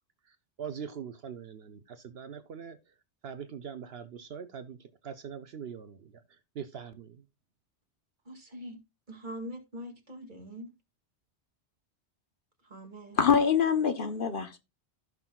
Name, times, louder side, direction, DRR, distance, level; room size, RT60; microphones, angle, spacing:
voice 1, 0.3-2.8 3.2-6.1 6.5-7.2, right 7 dB, 65° right, 0.9 m, -42 dB
voice 2, 8.3-8.8 9.1-10.7 12.6-13.2, equal, 45° right, 2.3 m, -43 dB
voice 3, 13.2-14.6, left 7 dB, 55° left, 1.0 m, -25 dB
15.5 x 6.0 x 2.3 m
omnidirectional pair, 1.1 m